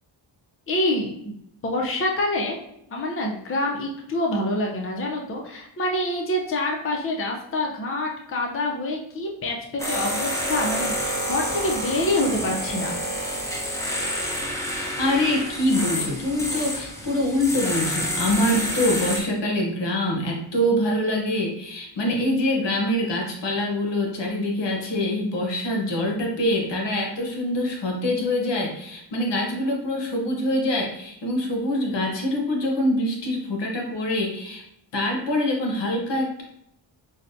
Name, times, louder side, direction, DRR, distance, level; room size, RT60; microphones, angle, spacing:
voice 1, 0.7-1.3 1.6-2.6 2.9-12.9, left 1 dB, 30° left, 0 dB, 0.6 m, -26 dB
sound 1, 9.8-19.2, equal, 5° left, 0.9 m, -28 dB
voice 2, 15.0-34.6 34.9-36.4, left 1 dB, 65° left, 0 dB, 1.0 m, -24 dB
5.5 x 2.2 x 2.6 m, 0.77 s
cardioid pair, 70°, 46 cm